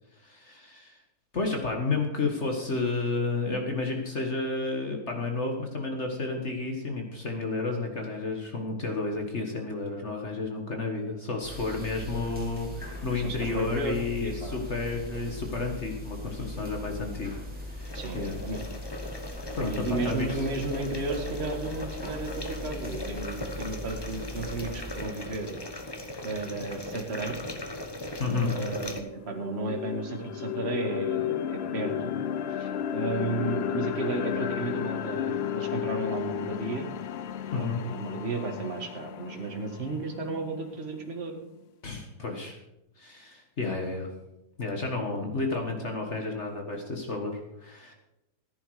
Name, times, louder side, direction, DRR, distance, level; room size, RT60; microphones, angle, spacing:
voice 1, 0.2-1.0 1.3-17.4 17.7-18.4 19.5-20.4 28.2-28.5 37.5-37.8 41.8-42.6 43.0-44.1 44.6-47.9, left 3 dB, 45° left, 2 dB, 1.8 m, -31 dB
sound 1, 11.4-25.1, left 1 dB, 5° right, 4.0 m, -40 dB
voice 2, 13.2-14.6 17.9-18.7 19.6-25.6 26.2-27.4 28.4-32.1 32.5-36.9 37.6-41.4, right 3 dB, 40° right, 3 dB, 1.8 m, -34 dB
sound 2, 17.8-29.0, left 1 dB, 20° left, 0.9 m, -38 dB
sound 3, 28.9-40.9, left 9 dB, 75° left, 0.5 m, -33 dB
14.5 x 10.5 x 4.9 m, 0.89 s
omnidirectional pair, 1.7 m